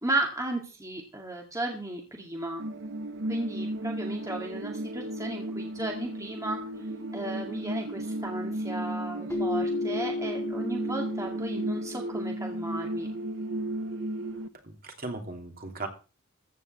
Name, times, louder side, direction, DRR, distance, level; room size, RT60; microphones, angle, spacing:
voice 1, 0.0-2.6 3.3-6.6 7.1-13.1, right 2 dB, 15° right, 0 dB, 2.2 m, -34 dB
sound 1, 2.6-14.5, right 1 dB, 60° right, 1.0 m, -34 dB
Keyboard (musical), 9.3-12.1, left 2 dB, 10° left, 0.7 m, -33 dB
voice 2, 14.6-15.9, right 3 dB, 45° right, 4 dB, 2.9 m, -37 dB
15.0 x 5.6 x 8.0 m, 0.35 s
head